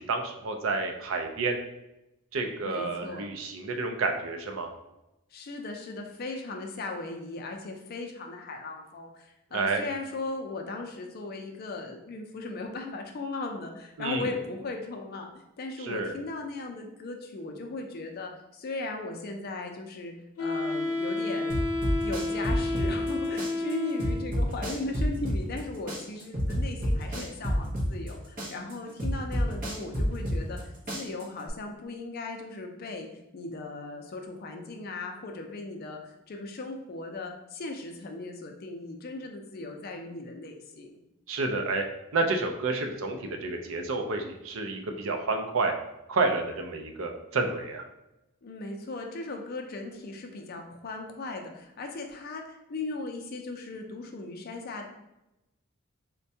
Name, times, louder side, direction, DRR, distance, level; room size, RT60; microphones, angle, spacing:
voice 1, 0.0-1.6 2.3-4.7 9.5-9.8 14.0-14.3 15.8-16.1 41.3-41.9 42.1-45.7 46.1-47.8, right 3 dB, 65° right, 4 dB, 0.5 m, -29 dB
voice 2, 2.6-3.3 5.3-15.3 15.6-20.1 20.4-21.6 22.0-33.1 33.3-41.0 48.4-54.9, left 3 dB, 45° left, 3 dB, 0.4 m, -37 dB
Wind instrument woodwind instrument, 20.4-24.5, left 2 dB, 90° left, 0.7 m, -30 dB
sound 1, 21.5-23.1 23.4-25.6 25.9-28.1 28.4-30.6 30.9-31.5, equal, 40° right, 0.9 m, -28 dB
4.3 x 2.2 x 2.7 m, 0.91 s
head